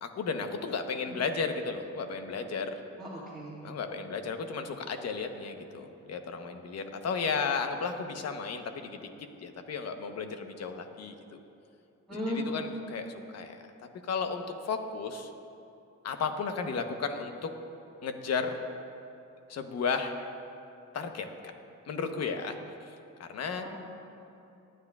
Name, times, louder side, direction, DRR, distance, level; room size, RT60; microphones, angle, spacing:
voice 1, 0.0-2.8 3.6-9.0 9.4-11.4 12.3-13.6 14.0-15.3 16.0-17.5 18.0-18.6 19.5-20.3 20.9-21.5 21.9-23.7, left 5 dB, 55° left, 6 dB, 1.0 m, -34 dB
voice 2, 3.0-3.8 12.1-12.4 23.6-23.8, left 1 dB, ahead, -10 dB, 2.2 m, -37 dB
21.5 x 9.4 x 2.4 m, 2.7 s
cardioid pair, 90°, 30 cm